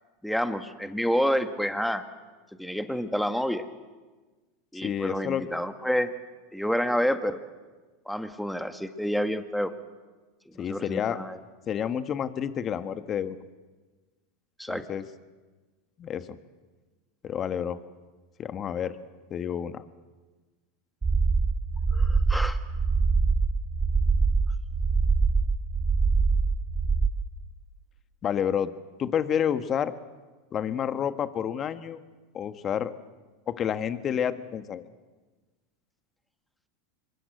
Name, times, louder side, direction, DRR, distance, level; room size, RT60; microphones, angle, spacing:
voice 1, 0.2-2.0 2.6-3.6 4.7-6.1 6.5-7.4 8.1-9.7 10.6-11.4 14.6-14.8 21.9-22.6, equal, ahead, 8 dB, 1.7 m, -28 dB
voice 2, 4.8-5.4 10.6-11.2 11.7-13.4 14.7-15.0 16.0-16.3 17.2-17.8 18.4-18.9 19.3-19.8 28.2-28.7 29.0-29.9 30.5-32.0 32.3-32.9 33.5-34.8, left 8 dB, 35° left, 11 dB, 1.6 m, -29 dB
sound 1, 21.0-27.1, right 4 dB, 20° right, 2.6 m, -24 dB
26.5 x 23.0 x 7.9 m, 1.3 s
hypercardioid pair, 90°, 0 cm